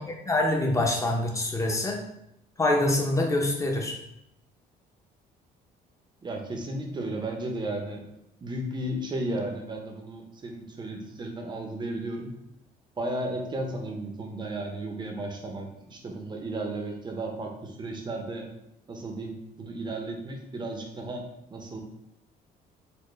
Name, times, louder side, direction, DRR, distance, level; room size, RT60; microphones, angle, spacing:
voice 1, 0.1-2.0 2.6-4.0, left 2 dB, 20° left, 1 dB, 0.7 m, -25 dB
voice 2, 6.2-8.0 8.4-12.4 13.0-18.5 18.9-21.2 21.5-21.8, right 1 dB, 25° right, 2 dB, 0.7 m, -34 dB
4.2 x 2.1 x 3.2 m, 0.80 s
cardioid pair, 110°, 17 cm